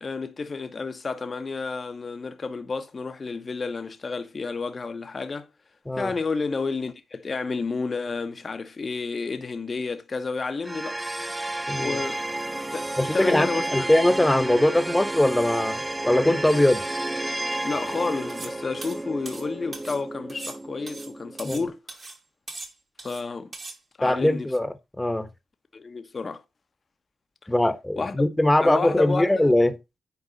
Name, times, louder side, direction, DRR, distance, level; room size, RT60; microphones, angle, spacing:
voice 1, 0.0-5.5 5.9-11.0 11.7-12.2 12.5-12.9 13.1-13.9 17.6-21.8 23.0-23.5 24.0-24.5 25.7-26.4 28.0-28.1 28.6-29.5, left 4 dB, 45° left, 1.1 m, -31 dB
sound 1, 10.6-21.7, right 2 dB, 15° right, 0.4 m, -32 dB
voice 2, 11.7-12.0 13.0-16.8 21.4-21.7 24.0-24.7 25.0-25.3 27.5-29.8, left 1 dB, 10° left, 1.2 m, -21 dB
sound 2, 18.3-18.6 18.8-20.0 20.3-21.6 21.9-22.2 22.5-23.2 23.5-23.8, right 3 dB, 50° right, 2.5 m, -40 dB
9.4 x 4.7 x 4.0 m
supercardioid pair, 40°, 0 cm